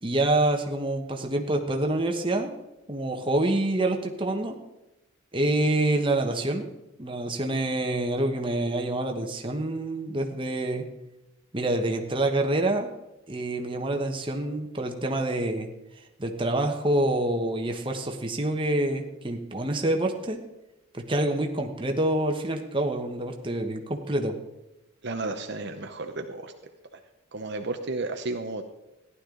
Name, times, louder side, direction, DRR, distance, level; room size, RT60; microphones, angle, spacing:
voice 1, 0.0-2.5 2.9-4.5 5.3-6.7 7.0-10.8 11.5-12.9 13.3-15.7 16.2-20.4 20.9-24.3, right 1 dB, 25° right, 3 dB, 1.2 m, -27 dB
voice 2, 25.0-26.5 26.9-27.0 27.3-28.6, right 2 dB, 55° right, 5 dB, 0.8 m, -33 dB
15.0 x 11.0 x 3.9 m, 0.95 s
head